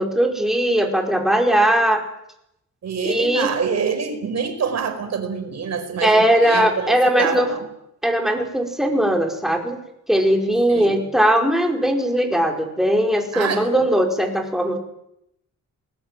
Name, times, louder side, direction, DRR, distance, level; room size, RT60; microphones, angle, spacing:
voice 1, 0.0-2.0 3.0-3.5 6.0-7.5 8.0-9.8 10.1-14.8, right 1 dB, ahead, 2 dB, 5.0 m, -19 dB
voice 2, 2.8-7.7 10.7-11.0 13.3-13.9, right 6 dB, 55° right, 8 dB, 5.1 m, -26 dB
28.0 x 20.5 x 9.2 m, 0.81 s
cardioid pair, 130°, 31 cm